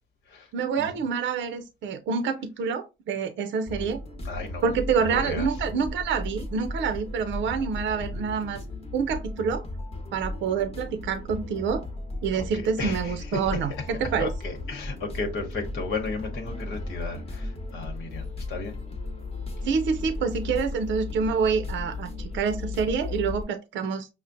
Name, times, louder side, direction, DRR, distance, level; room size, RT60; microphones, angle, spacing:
voice 1, 0.5-4.0 4.6-8.6 8.9-9.6 10.1-11.8 12.2-14.3 19.6-24.1, right 6 dB, 70° right, 0.5 m, -27 dB
sound 1, 3.7-23.4, left 2 dB, 30° left, 0.9 m, -35 dB
voice 2, 4.2-4.7 5.0-5.5 12.3-13.6 14.2-18.8, left 3 dB, 90° left, 1.0 m, -34 dB
5.6 x 2.0 x 2.5 m
cardioid pair, 90°, 20 cm